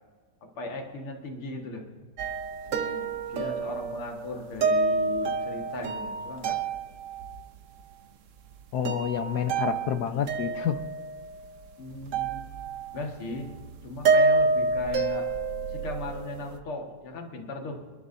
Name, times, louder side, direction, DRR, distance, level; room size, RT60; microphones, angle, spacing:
voice 1, 0.4-1.8 2.7-6.6 11.8-12.5 12.9-13.5 13.8-15.3 15.7-17.9, left 2 dB, 85° left, 2 dB, 2.7 m, -37 dB
sound 1, 2.2-7.4 8.5-8.6 8.8-11.6 12.1-13.0 13.3-16.6, right 4 dB, 75° right, 0.7 m, -28 dB
voice 2, 8.7-10.8, left 8 dB, 65° left, 10 dB, 1.0 m, -28 dB
27.5 x 11.5 x 2.7 m, 1.4 s
omnidirectional pair, 2.3 m